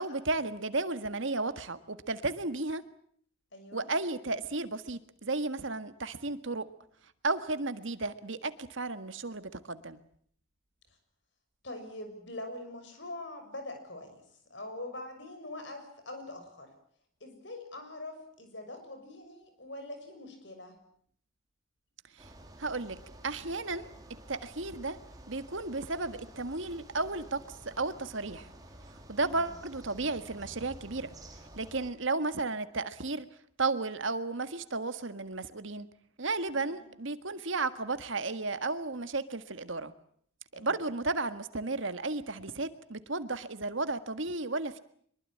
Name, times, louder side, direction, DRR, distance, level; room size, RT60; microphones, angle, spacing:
voice 1, 0.0-2.8 3.7-6.7 7.2-10.0 22.2-22.3 22.6-23.0 23.2-23.9 24.3-25.0 25.3-27.4 27.6-28.5 29.1-31.1 31.6-33.3 33.6-35.9 36.2-39.9 40.5-44.8, right 3 dB, 65° right, 11 dB, 1.7 m, -33 dB
voice 2, 3.5-3.9 11.6-14.2 14.5-16.7 17.2-20.7 29.2-29.5 36.5-36.9 40.5-40.8, left 1 dB, 60° left, 7 dB, 6.3 m, -43 dB
sound 1, 22.2-31.9, right 1 dB, 20° right, 3.6 m, -51 dB
24.5 x 22.5 x 8.7 m, 0.63 s
head